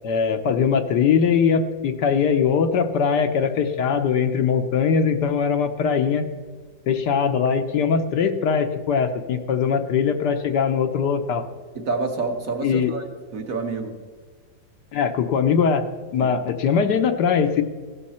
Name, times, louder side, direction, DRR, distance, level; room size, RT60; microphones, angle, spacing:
voice 1, 0.0-6.2 6.9-11.5 12.6-12.9 14.9-15.8 16.1-17.6, left 6 dB, 65° left, 7 dB, 1.3 m, -21 dB
voice 2, 11.7-13.1 13.3-14.0 16.2-16.3, right 3 dB, 50° right, 4 dB, 1.5 m, -28 dB
15.5 x 12.5 x 4.3 m, 1.5 s
omnidirectional pair, 2.1 m